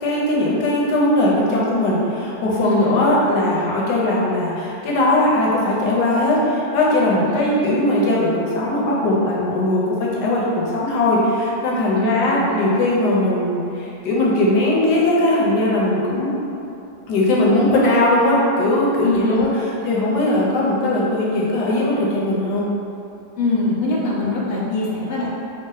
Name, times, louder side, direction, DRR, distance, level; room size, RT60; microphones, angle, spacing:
voice 1, 0.0-13.6 14.0-16.3 17.1-19.5 19.9-22.6, left 1 dB, 65° left, -5 dB, 1.3 m, -19 dB
voice 2, 2.6-3.0 7.3-7.7 11.9-12.4 19.0-19.5 23.4-25.3, left 3 dB, 90° left, -5 dB, 1.6 m, -23 dB
5.2 x 2.2 x 3.9 m, 2.9 s
omnidirectional pair, 2.1 m